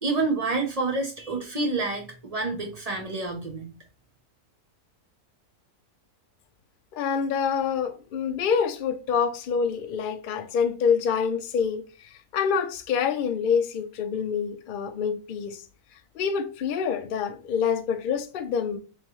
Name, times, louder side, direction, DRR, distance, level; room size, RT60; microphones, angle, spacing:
voice 1, 0.0-3.8, right 3 dB, 35° right, 0.7 m, -28 dB
voice 2, 6.9-11.8 12.3-15.6 16.2-18.8, left 6 dB, 70° left, 0.4 m, -26 dB
3.7 x 3.1 x 3.0 m
omnidirectional pair, 1.6 m